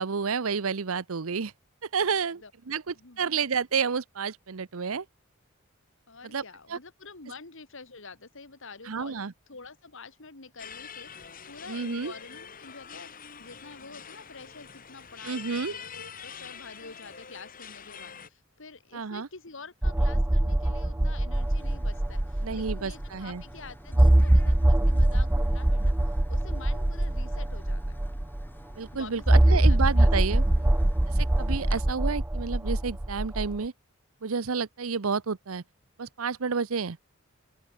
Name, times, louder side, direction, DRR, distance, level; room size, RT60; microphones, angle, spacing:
voice 1, 0.0-1.5 1.9-5.0 6.3-6.4 6.7-6.8 8.9-9.3 11.7-12.1 15.2-15.7 18.9-19.3 22.4-23.4 28.8-30.4 31.2-33.7 34.2-35.6 36.0-37.0, right 5 dB, 85° right, 0.8 m, -30 dB
voice 2, 2.9-3.3 6.1-28.0 28.9-30.7, left 4 dB, 65° left, 2.3 m, -47 dB
sound 1, 10.6-18.3, left 7 dB, 40° left, 2.5 m, -45 dB
sound 2, 19.8-23.1 23.4-23.5 23.9-28.5 29.3-33.6, right 1 dB, 10° right, 0.4 m, -23 dB
sound 3, 21.3-31.8, equal, 10° left, 2.2 m, -49 dB
open air
head